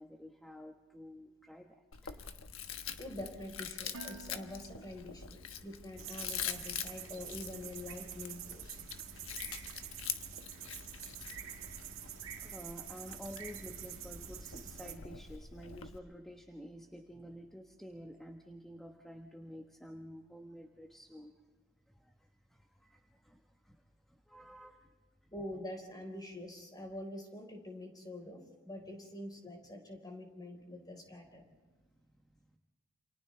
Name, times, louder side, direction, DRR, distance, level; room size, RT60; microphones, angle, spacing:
voice 1, 0.0-2.2 12.4-21.3 22.0-22.1 22.5-23.8 24.3-24.9 31.4-31.5 31.9-32.0, equal, ahead, 2 dB, 1.1 m, -50 dB
Chewing mastication, 1.9-16.0, left 8 dB, 65° left, 1.3 m, -45 dB
voice 2, 3.0-8.9 25.3-31.4, left 1 dB, 20° left, 2 dB, 4.3 m, -46 dB
Dishes pots and pans, 3.9-6.0, right 4 dB, 80° right, 0.6 m, -53 dB
sound 1, 6.0-14.9, right 10 dB, 65° right, 2.0 m, -47 dB
29.0 x 28.0 x 3.4 m, 1.3 s
head